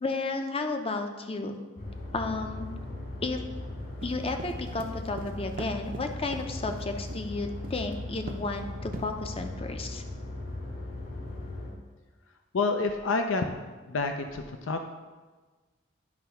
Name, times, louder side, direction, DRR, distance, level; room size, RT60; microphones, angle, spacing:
voice 1, 0.0-1.6 2.1-2.7 3.2-3.4 4.0-10.0, left 3 dB, 30° left, 6 dB, 0.6 m, -33 dB
sound 1, 1.8-11.7, left 1 dB, 55° left, 2.2 m, -38 dB
sound 2, 4.0-7.3 7.6-8.0 8.3-8.6 8.9-9.5, right 2 dB, 45° right, 0.6 m, -41 dB
voice 2, 12.5-13.5 13.9-14.8, left 3 dB, 70° left, 5 dB, 0.5 m, -28 dB
9.6 x 3.4 x 5.6 m, 1.3 s
head